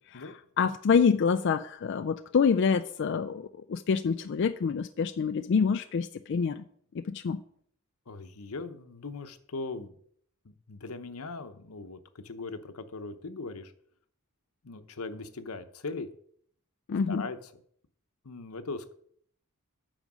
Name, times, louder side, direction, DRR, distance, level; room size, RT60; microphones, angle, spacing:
voice 1, 0.6-6.6 6.9-7.4 16.9-17.2, left 6 dB, 55° left, 8 dB, 0.4 m, -26 dB
voice 2, 8.1-9.9 10.4-13.7 14.6-16.1 17.1-17.6 18.2-18.9, left 3 dB, 85° left, 9 dB, 0.9 m, -39 dB
9.0 x 5.1 x 6.1 m, 0.64 s
head